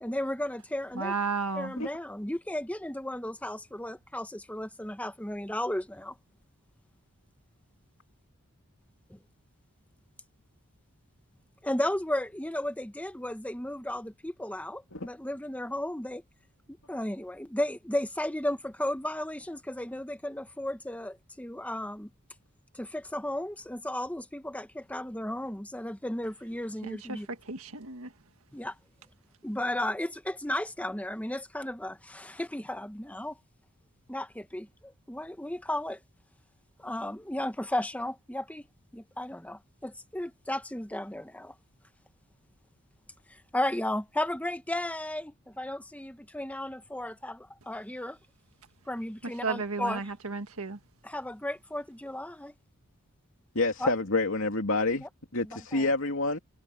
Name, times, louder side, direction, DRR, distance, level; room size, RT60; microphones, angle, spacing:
voice 1, 0.0-1.1 1.5-6.2 9.1-9.2 11.6-16.2 16.7-22.1 22.7-27.3 28.5-28.7 29.4-33.4 34.1-36.0 36.8-38.7 38.9-41.5 43.3-48.2 48.9-50.0 51.0-52.5 53.8-53.9 55.0-55.1 55.4-55.9, left 1 dB, 5° left, 1.1 m, -34 dB
voice 2, 0.9-1.7 26.8-28.1 49.2-50.8, right 4 dB, 70° right, 1.6 m, -33 dB
voice 3, 53.5-55.1 55.3-56.4, left 2 dB, 60° left, 2.8 m, -27 dB
head